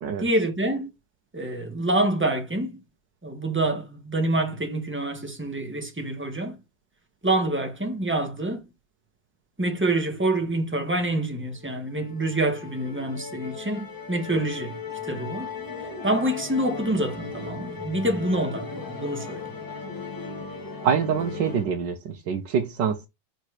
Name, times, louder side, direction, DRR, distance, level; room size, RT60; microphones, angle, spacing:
voice 1, 0.2-0.9 1.3-2.8 3.2-6.6 7.2-8.6 9.6-14.8 15.1-15.5 16.0-19.4, right 1 dB, 5° right, 1.6 m, -26 dB
Musical instrument, 11.5-21.7, left 5 dB, 10° left, 1.3 m, -37 dB
voice 2, 20.8-23.1, right 7 dB, 70° right, 1.6 m, -25 dB
6.4 x 4.5 x 5.0 m
omnidirectional pair, 2.0 m